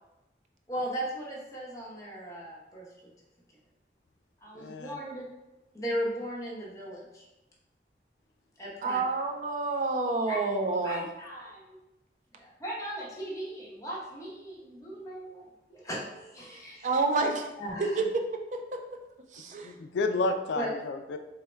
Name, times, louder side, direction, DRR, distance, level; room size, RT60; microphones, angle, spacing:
voice 1, 0.7-2.9 4.4-5.3 5.7-7.3 8.6-9.0 10.3-10.4 10.8-11.8 12.4-17.0 17.6-18.0 20.5-20.7, equal, 20° left, -5 dB, 0.8 m, -37 dB
voice 2, 4.6-5.0 19.6-21.2, left 3 dB, 75° left, 7 dB, 0.3 m, -31 dB
voice 3, 8.8-11.0 16.8-17.5 17.8-18.8 19.3-19.7, right 3 dB, 45° right, 4 dB, 0.3 m, -29 dB
3.3 x 2.1 x 4.3 m, 0.99 s
head